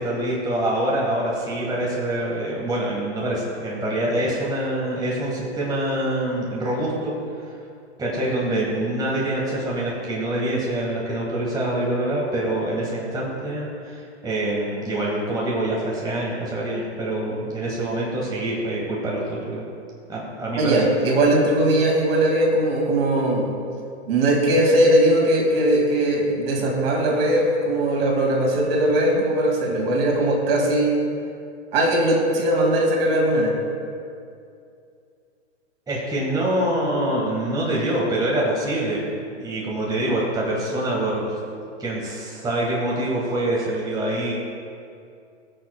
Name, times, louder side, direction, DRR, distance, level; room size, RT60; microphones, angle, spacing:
voice 1, 0.0-7.5 8.0-19.6 20.1-20.8 35.9-39.0 39.4-41.2 41.8-44.3, right 1 dB, 10° right, -4 dB, 1.6 m, -25 dB
voice 2, 20.6-23.5 24.1-31.0 31.7-33.5, right 1 dB, 55° right, 0 dB, 2.2 m, -19 dB
19.5 x 6.7 x 2.2 m, 2.4 s
hypercardioid pair, 115°, 34 cm